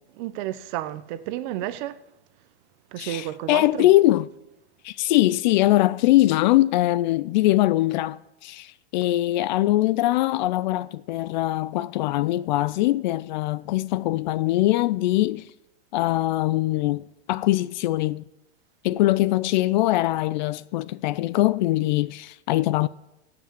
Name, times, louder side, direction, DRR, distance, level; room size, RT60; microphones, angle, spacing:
voice 1, 0.2-2.0 2.9-3.9, right 13 dB, 45° right, 0.8 m, -31 dB
voice 2, 3.0-4.3 4.8-15.5 15.9-18.2 18.8-22.9, left 16 dB, 45° left, 0.4 m, -22 dB
17.0 x 6.0 x 7.5 m
hypercardioid pair, 135°, 34 cm